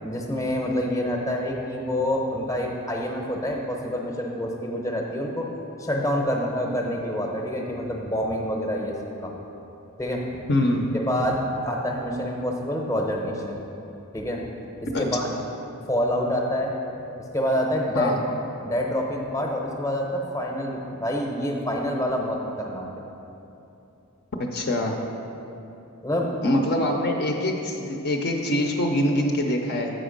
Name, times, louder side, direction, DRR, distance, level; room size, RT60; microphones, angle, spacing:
voice 1, 0.0-5.5 5.8-9.0 9.2-9.3 10.0-10.4 10.9-13.6 14.1-14.4 14.8-15.3 15.9-16.7 17.3-18.2 18.6-22.9 26.0-26.3, equal, 15° left, 0 dB, 0.7 m, -27 dB
voice 2, 10.5-10.9 14.9-15.1 17.9-18.2 24.4-24.9 26.4-29.9, left 1 dB, 50° left, 2 dB, 0.6 m, -24 dB
7.7 x 5.0 x 5.1 m, 2.9 s
head